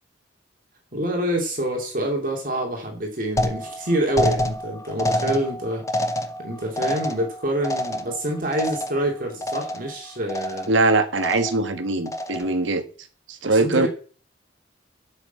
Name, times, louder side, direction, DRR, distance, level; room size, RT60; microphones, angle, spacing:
voice 1, 0.9-5.8 6.4-10.7 13.4-13.9, right 1 dB, 45° right, 2.3 m, -26 dB
sound 1, 3.4-9.1 9.4-10.0 10.3-10.8 11.2-11.7 12.1-12.6, left 1 dB, 15° left, 0.7 m, -27 dB
voice 2, 10.7-12.8 13.3-13.9, right 3 dB, 85° right, 1.4 m, -21 dB
8.2 x 6.4 x 7.9 m
head